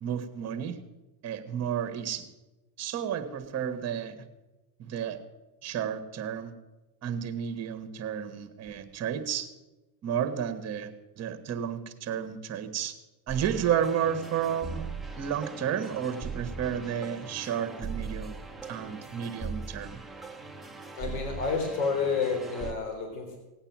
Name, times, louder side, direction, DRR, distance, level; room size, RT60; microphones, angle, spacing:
voice 1, 0.0-0.8 1.2-2.3 2.8-4.2 4.8-5.2 5.6-6.5 7.0-9.5 10.0-13.0 13.3-14.9 15.2-18.4 18.6-20.0, right 8 dB, 30° right, 8 dB, 1.5 m, -32 dB
sound 1, 13.3-22.7, right 4 dB, ahead, 0.6 m, -40 dB
voice 2, 21.0-23.4, left 5 dB, 75° left, 2 dB, 3.8 m, -30 dB
17.5 x 8.9 x 7.4 m, 1.1 s
supercardioid pair, 140°, 50 cm